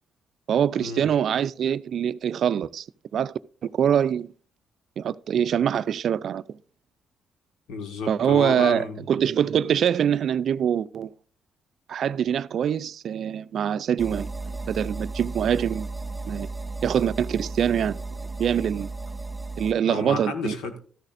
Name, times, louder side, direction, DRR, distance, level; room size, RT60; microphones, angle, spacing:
voice 1, 0.5-2.9 3.1-3.3 3.6-4.3 5.0-6.4 8.1-11.1 11.9-14.3 14.7-15.9 16.3-16.5 16.8-18.0 18.4-18.9 19.6-20.5, right 8 dB, 65° right, 0.4 m, -24 dB
voice 2, 7.7-9.0 19.9-20.8, left 4 dB, 90° left, 1.6 m, -31 dB
sound 1, 14.0-19.7, right 3 dB, 15° right, 1.6 m, -34 dB
13.0 x 10.5 x 2.6 m
cardioid pair, 90°, 0 cm